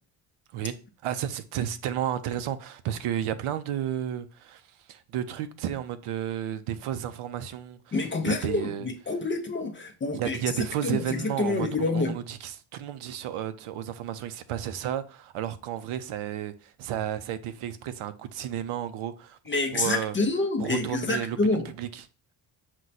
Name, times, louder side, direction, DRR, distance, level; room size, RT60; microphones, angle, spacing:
voice 1, 1.0-4.6 4.9-8.0 8.2-8.9 10.1-20.2 20.6-22.0, right 10 dB, 85° right, 0.6 m, -32 dB
voice 2, 7.9-12.1 19.5-21.6, left 3 dB, 25° left, 0.5 m, -28 dB
6.1 x 2.2 x 4.0 m
cardioid pair, 155°, 49 cm